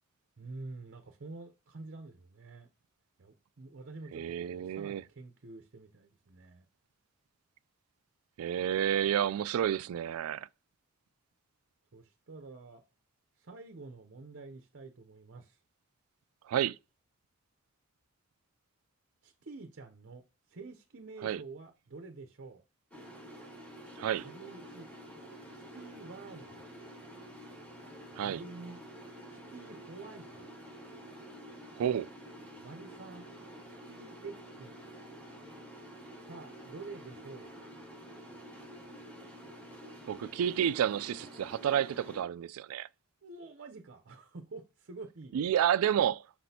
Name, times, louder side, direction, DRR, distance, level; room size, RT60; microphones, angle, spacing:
voice 1, 0.4-2.7 3.2-6.7 11.9-12.8 13.4-15.6 19.2-22.6 24.2-24.9 25.5-26.7 28.2-28.8 29.3-30.5 32.6-33.3 33.6-34.8 36.2-37.7 43.2-45.4, right 3 dB, 55° right, 0.7 m, -48 dB
voice 2, 4.1-5.0 8.4-10.5 16.5-16.8 21.2-21.4 24.0-24.3 28.2-28.4 31.8-32.1 40.1-42.9 45.3-46.2, right 9 dB, 85° right, 0.3 m, -30 dB
sound 1, 22.9-42.2, equal, 5° left, 2.1 m, -49 dB
6.0 x 5.9 x 2.8 m
head